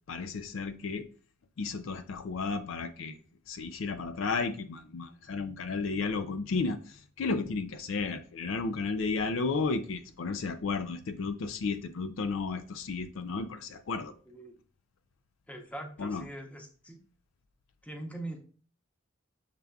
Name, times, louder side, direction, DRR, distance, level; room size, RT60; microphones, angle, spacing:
voice 1, 0.1-1.1 1.6-3.2 3.5-14.1 16.0-16.2, left 4 dB, 75° left, 0.4 m, -33 dB
voice 2, 14.3-14.6 15.5-17.0 17.8-18.4, right 1 dB, 5° left, 0.8 m, -42 dB
6.6 x 3.5 x 2.3 m
head